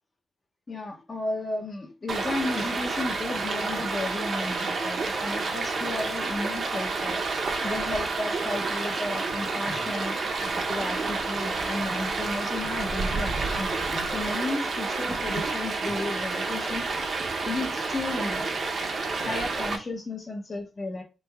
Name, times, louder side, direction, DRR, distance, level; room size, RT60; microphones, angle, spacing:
voice 1, 0.7-7.2 7.6-10.2 10.5-16.8 17.5-18.5 19.0-21.0, left 2 dB, 35° left, 3 dB, 0.5 m, -33 dB
Stream, 2.1-19.8, right 3 dB, 55° right, 0.6 m, -29 dB
3.4 x 3.1 x 2.2 m, 0.30 s
wide cardioid pair, 125°, 0 cm